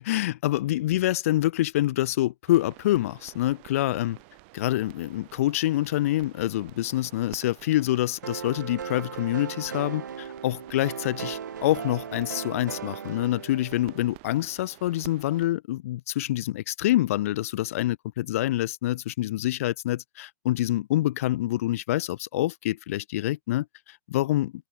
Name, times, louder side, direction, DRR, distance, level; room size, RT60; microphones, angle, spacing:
voice 1, 0.0-4.2 4.5-24.5, left 15 dB, 45° left, 0.4 m, -26 dB
sound 1, 2.5-15.5, right 29 dB, 40° right, 3.8 m, -51 dB
sound 2, 8.2-14.1, right 7 dB, 65° right, 0.8 m, -37 dB
figure-of-eight pair, 110°, 10 cm